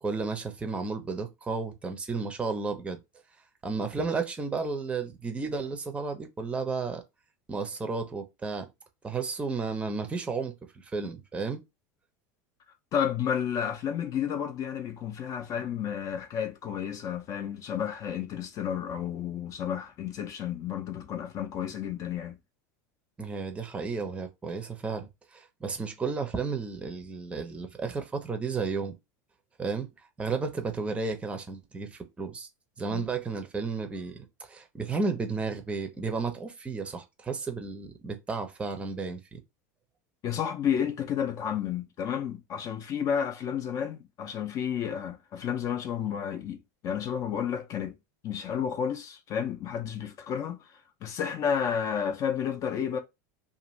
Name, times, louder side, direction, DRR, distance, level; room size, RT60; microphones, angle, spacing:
voice 1, 0.0-3.0 3.6-7.0 7.5-8.7 9.0-11.6 23.2-28.9 29.6-29.9 30.2-32.5 32.8-39.4, right 4 dB, 15° right, 0.6 m, -33 dB
voice 2, 12.9-22.4 32.9-33.1 40.2-47.9 48.2-53.0, left 8 dB, 40° left, 0.5 m, -31 dB
2.5 x 2.5 x 3.0 m
supercardioid pair, 130°, 9 cm